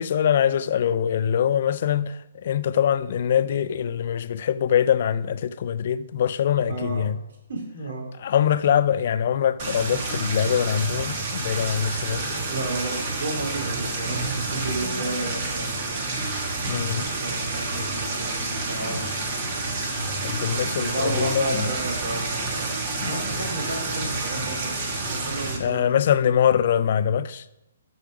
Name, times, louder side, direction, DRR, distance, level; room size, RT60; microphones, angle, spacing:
voice 1, 0.0-7.2 8.2-12.4 16.7-17.0 20.2-21.7 23.0-23.2 25.6-27.4, left 9 dB, 50° left, 0.4 m, -23 dB
voice 2, 6.7-7.0 7.5-8.1 12.5-15.9 16.8-19.4 20.5-26.0, right 2 dB, 65° right, 2.9 m, -32 dB
sound 1, 9.6-25.6, right 3 dB, 35° right, 1.3 m, -29 dB
sound 2, 18.0-20.8 21.0-22.1, equal, 5° left, 1.3 m, -46 dB
6.6 x 6.4 x 4.9 m
hypercardioid pair, 160°, 0 cm